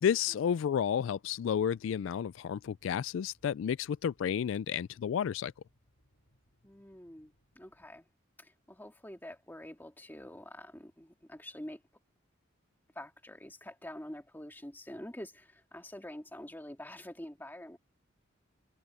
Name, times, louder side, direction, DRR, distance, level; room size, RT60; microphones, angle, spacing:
voice 1, 0.0-5.5, left 8 dB, 70° left, 0.3 m, -31 dB
sound 1, 1.5-8.0, equal, 90° left, 7.8 m, -71 dB
voice 2, 6.6-8.1 8.4-11.8 13.0-17.8, left 1 dB, 10° left, 2.0 m, -46 dB
head